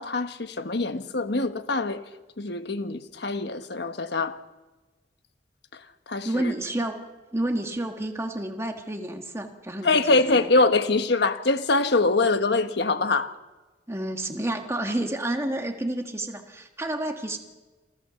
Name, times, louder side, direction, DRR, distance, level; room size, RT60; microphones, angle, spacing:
voice 1, 0.0-2.0 2.4-4.4 6.1-6.5 9.8-13.3, left 3 dB, 65° left, 1.3 m, -24 dB
voice 2, 6.2-7.0 7.3-10.5 13.9-17.4, right 1 dB, 15° right, 1.7 m, -30 dB
28.5 x 14.5 x 7.0 m
head